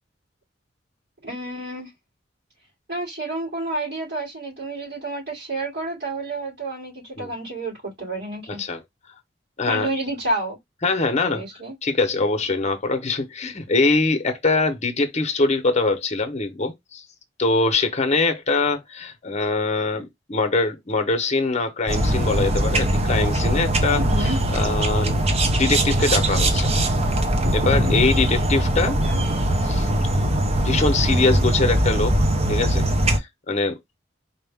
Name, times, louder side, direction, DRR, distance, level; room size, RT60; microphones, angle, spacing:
voice 1, 1.2-1.9 2.9-8.6 9.7-10.6 11.2-11.7 24.0-24.4 27.4-28.1 28.8-29.2, right 1 dB, 65° right, 3.1 m, -29 dB
voice 2, 8.5-8.8 9.6-9.9 10.8-11.4 11.8-17.0 17.4-24.0 24.5-25.2 25.5-26.7 27.5-29.0 29.7-29.9 30.6-32.1 32.5-32.9 33.2-33.8, left 3 dB, 35° left, 0.9 m, -23 dB
sound 1, 21.9-33.2, right 1 dB, 35° right, 0.7 m, -21 dB
4.3 x 2.5 x 3.4 m
head